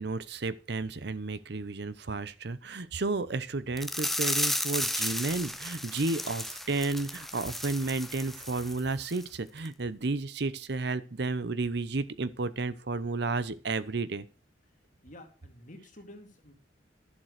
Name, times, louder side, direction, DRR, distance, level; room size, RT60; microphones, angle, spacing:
voice 1, 0.0-14.3, right 3 dB, 60° right, 16 dB, 0.8 m, -32 dB
sound 1, 3.8-8.8 9.1-9.2 9.6-9.7, left 1 dB, ahead, 0.7 m, -33 dB
voice 2, 15.0-16.5, left 1 dB, 40° left, 4 dB, 2.4 m, -50 dB
11.5 x 7.6 x 6.6 m, 0.36 s
head